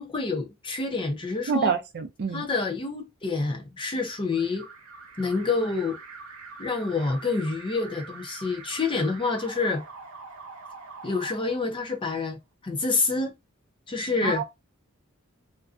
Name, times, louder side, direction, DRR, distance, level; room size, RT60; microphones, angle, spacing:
voice 1, 0.0-1.7 2.3-4.7 5.2-6.0 6.6-9.8 11.0-12.4 12.6-13.3 13.9-14.4, left 3 dB, 25° left, 0.5 m, -27 dB
voice 2, 1.5-2.4 14.2-14.4, right 5 dB, 50° right, 0.4 m, -27 dB
Alarm, 4.3-12.2, right 4 dB, 90° right, 0.7 m, -44 dB
2.4 x 2.2 x 2.4 m
head